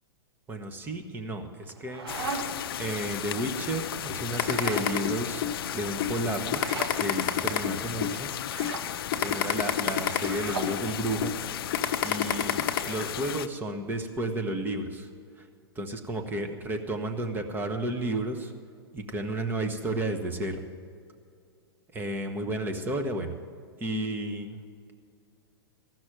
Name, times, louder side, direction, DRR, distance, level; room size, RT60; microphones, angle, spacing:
voice 1, 0.5-2.1 2.8-5.4 5.7-6.6 7.0-8.3 9.2-11.3 12.0-15.1 15.4-15.5 15.7-18.5 18.9-20.6 21.9-23.3 23.8-24.6, right 1 dB, 15° right, 5 dB, 1.2 m, -32 dB
sound 1, 1.6-2.7 4.3-4.9 6.5-7.0 8.4-8.9 10.1-10.8, right 4 dB, 85° right, 1.6 m, -37 dB
sound 2, 2.1-13.5, left 10 dB, 70° left, 0.5 m, -35 dB
sound 3, 4.4-5.6 6.0-6.1 6.5-8.2 8.6-8.7 9.1-10.8 11.2-11.4 11.7-12.8, left 10 dB, 50° left, 1.0 m, -27 dB
15.0 x 6.1 x 9.1 m, 2.3 s
hypercardioid pair, 120°, 13 cm